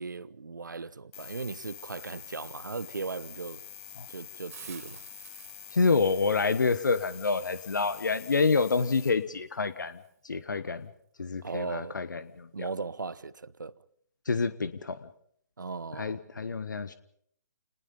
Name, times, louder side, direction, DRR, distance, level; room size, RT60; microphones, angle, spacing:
voice 1, 0.0-3.6 4.1-5.0 11.4-11.9 12.5-13.7 15.6-16.2, right 4 dB, 80° right, 1.1 m, -37 dB
sound 1, 1.1-9.1, left 9 dB, 40° left, 5.0 m, -46 dB
Hiss, 4.5-10.1, right 8 dB, 50° right, 3.3 m, -55 dB
voice 2, 5.7-10.0 10.2-10.9 11.2-12.7 14.2-15.1 16.0-17.0, left 4 dB, 75° left, 1.2 m, -28 dB
29.0 x 20.0 x 5.5 m
figure-of-eight pair, 130°, 10 cm